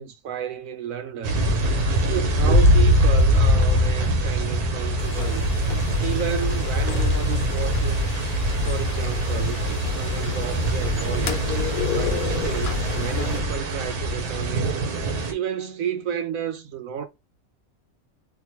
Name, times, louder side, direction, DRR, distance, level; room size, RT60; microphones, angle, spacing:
voice 1, 0.0-1.5 2.1-5.5 6.0-8.2 8.6-11.5 11.9-14.7 15.3-17.1, right 8 dB, 70° right, 1.0 m, -31 dB
sound 1, 1.2-15.3, equal, 90° right, 1.4 m, -22 dB
sound 2, 5.0-13.4, left 8 dB, 85° left, 1.2 m, -34 dB
3.7 x 2.5 x 2.9 m
omnidirectional pair, 1.6 m